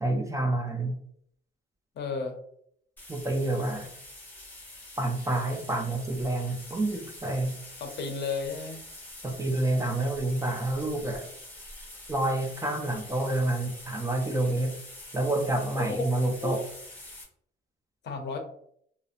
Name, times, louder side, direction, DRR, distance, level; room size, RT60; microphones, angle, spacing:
voice 1, 0.0-0.9 3.1-3.9 5.0-7.6 9.2-11.3 12.1-14.8 15.1-16.6, right 2 dB, 15° right, 1 dB, 0.5 m, -28 dB
voice 2, 2.0-2.3 7.8-8.8 15.8-16.1 16.4-16.6 18.0-18.4, left 4 dB, 60° left, 3 dB, 0.6 m, -33 dB
sound 1, 3.0-17.2, left 1 dB, 10° left, 0.9 m, -45 dB
2.6 x 2.1 x 2.4 m, 0.66 s
cardioid pair, 90°, 20 cm